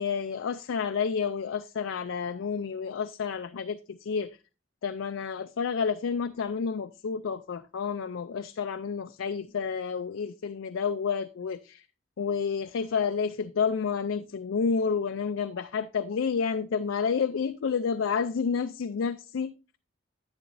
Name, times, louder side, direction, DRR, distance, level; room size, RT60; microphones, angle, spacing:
voice 1, 0.0-4.4 4.8-11.9 12.2-19.5, left 6 dB, 85° left, 0.4 m, -30 dB
10.5 x 8.9 x 2.6 m
head